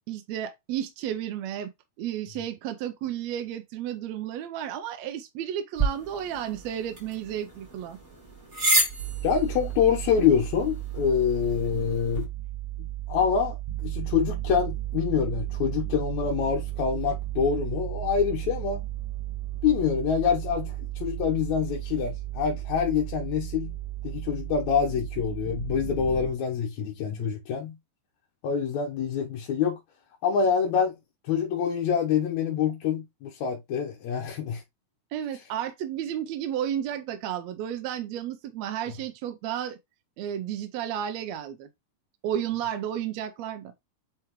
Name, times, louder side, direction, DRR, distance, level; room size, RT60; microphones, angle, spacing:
voice 1, 0.1-1.7 2.0-8.0 35.1-39.8 40.2-41.7 42.2-43.7, right 10 dB, 75° right, 1.8 m, -32 dB
sound 1, 5.8-12.2, right 2 dB, 20° right, 4.0 m, -31 dB
sound 2, 9.0-26.3, right 15 dB, 55° right, 1.6 m, -34 dB
voice 2, 9.2-12.3 13.1-18.9 19.6-23.7 24.0-27.7 28.4-29.8 30.2-31.0 31.2-34.6, left 7 dB, 75° left, 2.3 m, -26 dB
8.1 x 4.7 x 3.1 m
omnidirectional pair, 3.4 m